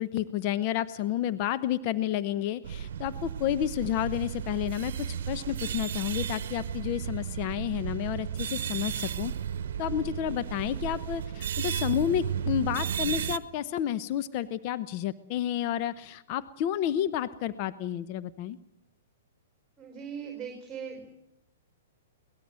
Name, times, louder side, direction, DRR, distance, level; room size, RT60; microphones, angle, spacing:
voice 1, 0.0-9.3 9.8-18.6, left 11 dB, 40° left, 12 dB, 0.9 m, -30 dB
sound 1, 2.6-13.4, right 8 dB, 60° right, 1.0 m, -34 dB
voice 2, 19.8-21.1, right 7 dB, 10° right, 2 dB, 5.0 m, -40 dB
22.5 x 18.5 x 7.6 m, 0.82 s
hypercardioid pair, 115°, 0 cm